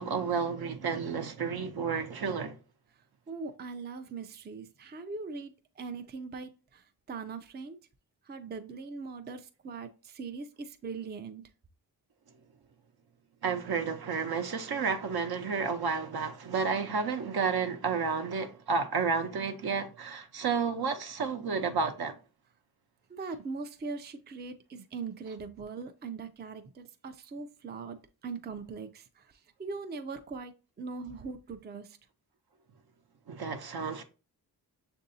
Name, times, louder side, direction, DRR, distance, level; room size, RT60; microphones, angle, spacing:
voice 1, 0.0-2.6 13.4-22.2 33.3-34.0, right 5 dB, 60° right, 0.8 m, -31 dB
voice 2, 3.3-7.8 8.2-11.4 23.1-32.0, right 4 dB, 25° right, 0.5 m, -41 dB
6.6 x 2.6 x 2.7 m
cardioid pair, 50°, 42 cm